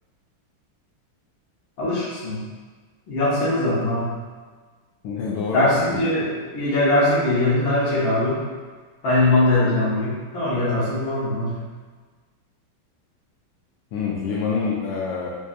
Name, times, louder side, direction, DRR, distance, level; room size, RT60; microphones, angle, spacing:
voice 1, 1.8-2.4 3.1-4.1 5.5-8.4 9.0-11.6, left 1 dB, 75° left, -9 dB, 2.3 m, -21 dB
voice 2, 5.0-6.0 13.9-15.3, left 5 dB, 90° left, -4 dB, 1.5 m, -26 dB
4.7 x 4.4 x 2.6 m, 1.4 s
omnidirectional pair, 2.3 m